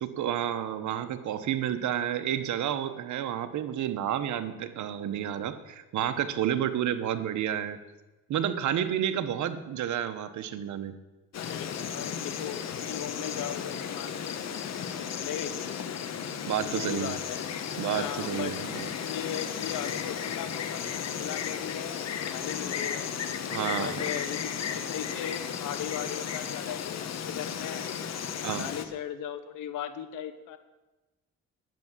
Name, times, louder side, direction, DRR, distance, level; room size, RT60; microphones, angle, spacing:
voice 1, 0.0-7.8 8.3-10.9 16.5-17.2 17.8-18.9 23.5-23.9 28.4-28.7, right 10 dB, 70° right, 10 dB, 1.1 m, -30 dB
Insect, 11.3-28.9, left 8 dB, 60° left, 1.2 m, -34 dB
voice 2, 11.4-14.1 14.8-15.9 16.6-17.4 17.8-23.1 23.6-27.9 28.3-30.6, left 9 dB, 85° left, 10 dB, 1.1 m, -38 dB
10.5 x 8.4 x 7.4 m, 1.1 s
cardioid pair, 90°, 30 cm